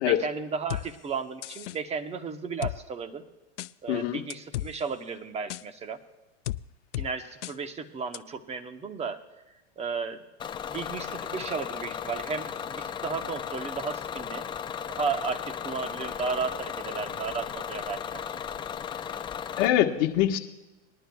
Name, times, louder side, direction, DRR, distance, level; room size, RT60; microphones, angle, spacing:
voice 1, 0.1-3.2 3.8-6.0 7.0-9.2 9.8-10.2 10.7-14.4 14.9-18.4, right 5 dB, 20° right, 8 dB, 1.0 m, -34 dB
sound 1, 0.7-0.8 1.4-1.8 2.6-2.8 3.6-3.7 4.3-4.7 5.5-5.6 6.4-6.6 6.9-7.1 7.4-7.5 8.1-8.2, left 15 dB, 90° left, 0.5 m, -33 dB
voice 2, 3.9-4.2 19.6-20.4, left 12 dB, 45° left, 2 dB, 1.4 m, -23 dB
Bus / Engine, 10.4-19.7, left 8 dB, 15° left, 0.4 m, -36 dB
20.5 x 11.5 x 2.3 m, 1.1 s
hypercardioid pair, 120°, 35 cm